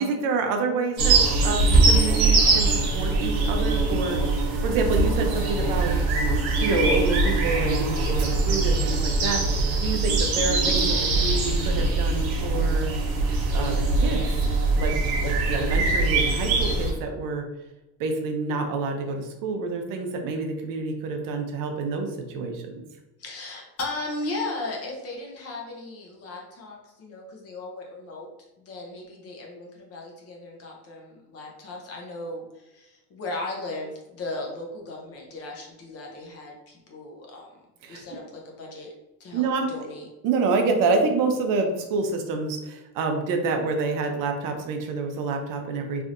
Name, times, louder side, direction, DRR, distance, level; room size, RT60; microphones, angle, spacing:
voice 1, 0.0-6.1 6.6-12.9 13.5-14.2 14.8-14.9 15.2-17.5 18.0-22.7 37.8-38.0 39.3-39.7 40.2-46.0, right 3 dB, 55° right, 4 dB, 0.5 m, -28 dB
sound 1, 1.0-16.9, right 3 dB, 80° right, 1.1 m, -22 dB
voice 2, 23.2-28.3 28.6-37.5 37.9-38.9 39.2-40.1, left 2 dB, 40° left, -1 dB, 0.7 m, -36 dB
3.3 x 2.7 x 2.4 m, 1.0 s
cardioid pair, 170°, 38 cm